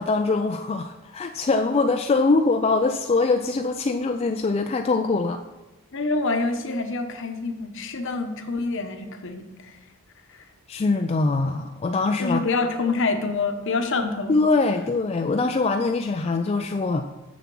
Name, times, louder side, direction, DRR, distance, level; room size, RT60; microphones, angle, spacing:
voice 1, 0.0-5.4 10.7-12.5 14.3-17.1, left 3 dB, 30° left, 5 dB, 0.3 m, -23 dB
voice 2, 5.9-9.8 10.3-10.5 12.2-14.4, left 3 dB, 60° left, 7 dB, 0.9 m, -26 dB
7.1 x 6.9 x 6.1 m, 1.1 s
head